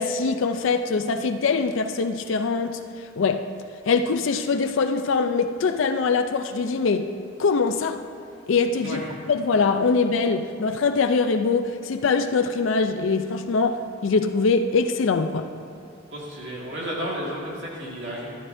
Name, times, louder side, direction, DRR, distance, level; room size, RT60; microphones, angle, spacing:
voice 1, 0.0-2.8 3.2-3.5 3.9-7.1 7.4-8.0 8.5-9.0 9.3-15.5, left 4 dB, 70° left, 0.4 m, -23 dB
voice 2, 16.1-18.4, equal, 60° right, 1.9 m, -32 dB
13.5 x 12.0 x 2.6 m
head